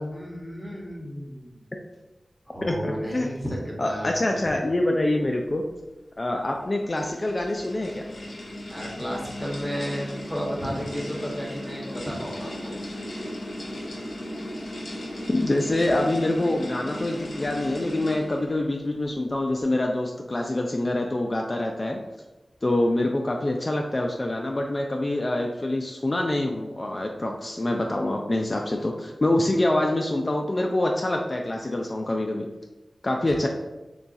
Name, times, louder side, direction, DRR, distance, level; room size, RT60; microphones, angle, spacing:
voice 1, 0.0-1.6 2.5-4.4 8.7-12.8, equal, 5° right, -3 dB, 1.2 m, -33 dB
voice 2, 2.6-3.3 3.8-5.6 6.2-8.1 15.3-22.0 22.6-32.5 33.0-33.5, left 1 dB, 40° left, 2 dB, 0.4 m, -25 dB
sound 1, 6.4-18.6, equal, 65° left, 1.3 m, -36 dB
6.8 x 2.3 x 2.6 m, 1.1 s
wide cardioid pair, 60°, 0 cm